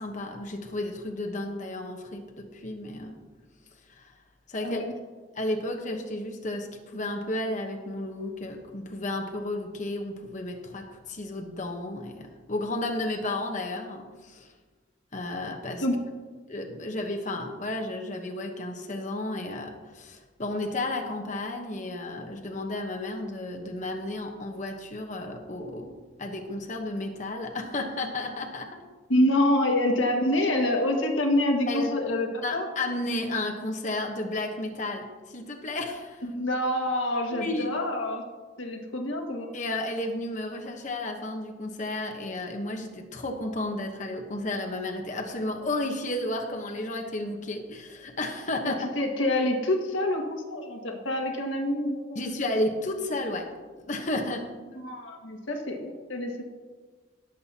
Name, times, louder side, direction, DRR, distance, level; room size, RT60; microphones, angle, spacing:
voice 1, 0.0-3.2 3.9-4.1 4.5-4.8 5.3-14.5 15.1-15.9 16.5-28.8 31.7-32.0 32.4-36.2 37.3-37.7 39.5-48.9 52.1-53.5 53.8-54.4, left 2 dB, 40° left, 2 dB, 1.1 m, -32 dB
voice 2, 4.6-4.9 15.8-16.0 29.1-32.7 36.2-38.2 38.6-39.5 48.6-52.2 54.7-56.4, left 1 dB, 90° left, 2 dB, 1.8 m, -26 dB
18.0 x 7.7 x 2.9 m, 1.4 s
head